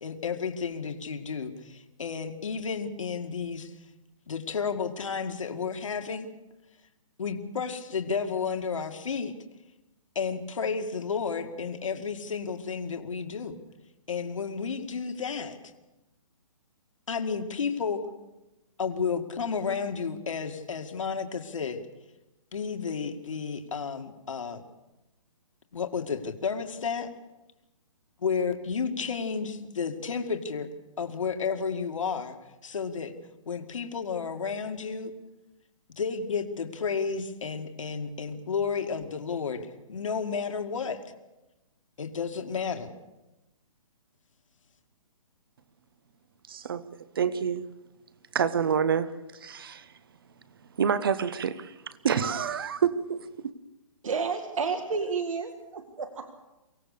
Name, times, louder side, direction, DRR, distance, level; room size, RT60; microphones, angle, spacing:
voice 1, 0.0-3.7 4.3-6.3 7.2-9.3 10.2-13.5 14.1-15.6 17.1-18.0 18.8-21.8 22.5-24.6 25.7-27.1 28.2-30.7 31.0-32.4 32.6-33.2 33.5-35.1 36.0-41.0 42.0-42.9, left 5 dB, 65° left, 2.2 m, -32 dB
voice 2, 46.5-46.9 47.1-47.7 48.3-49.9 50.8-53.5, right 7 dB, 40° right, 1.0 m, -28 dB
voice 3, 54.0-56.3, right 5 dB, 70° right, 2.0 m, -31 dB
24.0 x 17.0 x 6.7 m
hypercardioid pair, 175°, 17 cm